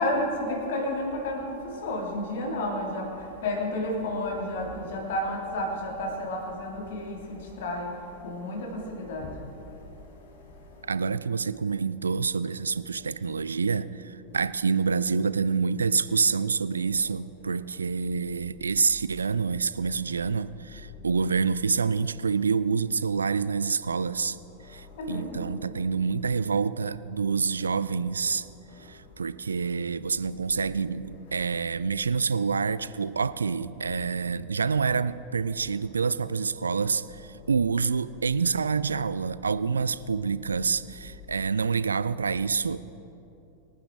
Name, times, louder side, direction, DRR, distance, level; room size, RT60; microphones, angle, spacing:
voice 1, 0.0-3.1 3.4-7.9 8.2-9.4 25.0-25.6, left 1 dB, 55° left, 1 dB, 2.7 m, -31 dB
voice 2, 10.9-24.4 24.6-28.5 28.8-42.8, right 5 dB, 75° right, 16 dB, 0.4 m, -27 dB
25.0 x 9.6 x 3.6 m, 2.9 s
figure-of-eight pair, 90°, 0 cm